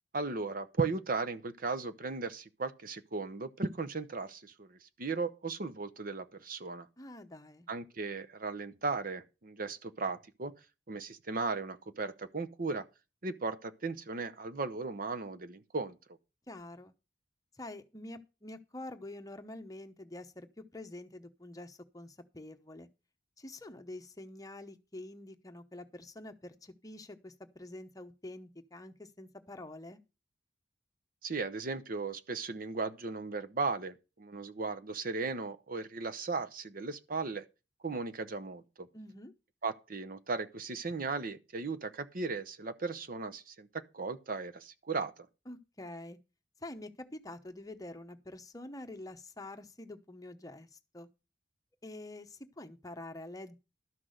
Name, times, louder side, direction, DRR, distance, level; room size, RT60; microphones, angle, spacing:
voice 1, 0.1-6.9 7.7-10.5 10.9-12.8 13.2-16.0 31.2-37.4 37.8-38.9 39.6-45.1, right 4 dB, 50° right, 0.8 m, -36 dB
voice 2, 7.0-7.7 16.5-16.9 17.5-22.9 23.4-30.0 38.9-39.3 45.5-46.2 46.6-51.1 51.8-53.6, left 1 dB, 20° left, 1.0 m, -47 dB
12.5 x 6.0 x 6.5 m
head